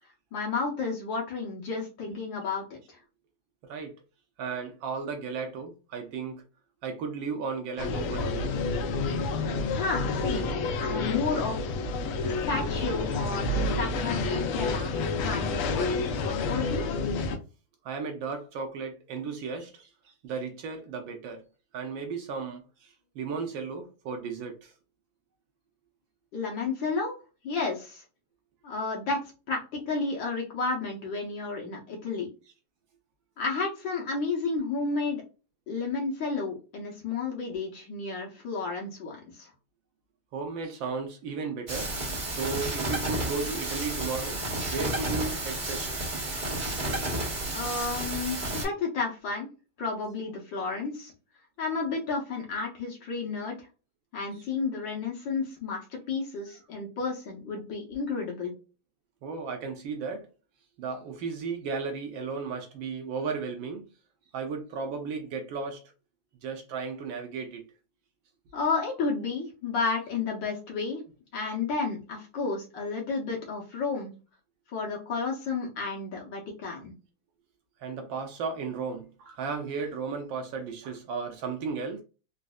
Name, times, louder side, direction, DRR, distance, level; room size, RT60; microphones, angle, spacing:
voice 1, 0.3-3.0 9.7-10.5 10.8-11.7 12.2-15.0 15.2-16.9 26.3-27.2 27.4-28.0 28.6-29.2 29.5-32.3 33.4-35.2 35.7-39.5 47.5-49.5 49.8-51.1 51.6-53.7 54.1-58.5 68.5-71.0 71.3-74.1 74.7-76.9, left 4 dB, 65° left, 1.6 m, -32 dB
voice 2, 3.6-3.9 4.4-6.4 6.8-8.6 9.0-9.2 17.8-21.4 21.7-24.7 40.3-41.9 42.3-44.4 44.7-46.0 59.2-60.3 60.8-63.8 64.3-65.8 66.4-67.6 77.8-82.0, right 5 dB, 75° right, 1.3 m, -35 dB
sound 1, 7.8-17.4, left 3 dB, 80° left, 1.5 m, -29 dB
sound 2, 41.7-48.6, right 1 dB, 25° right, 1.4 m, -31 dB
4.1 x 2.6 x 2.3 m
omnidirectional pair, 2.4 m